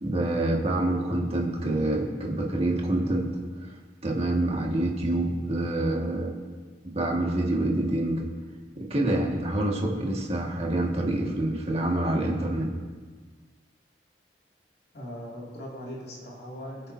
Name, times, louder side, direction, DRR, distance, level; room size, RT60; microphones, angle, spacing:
voice 1, 0.0-3.3 4.0-6.3 6.9-8.2 8.8-12.7, right 1 dB, 35° right, -2 dB, 1.8 m, -26 dB
voice 2, 14.9-16.9, equal, 60° left, -4 dB, 2.5 m, -39 dB
22.5 x 7.5 x 2.7 m, 1.5 s
head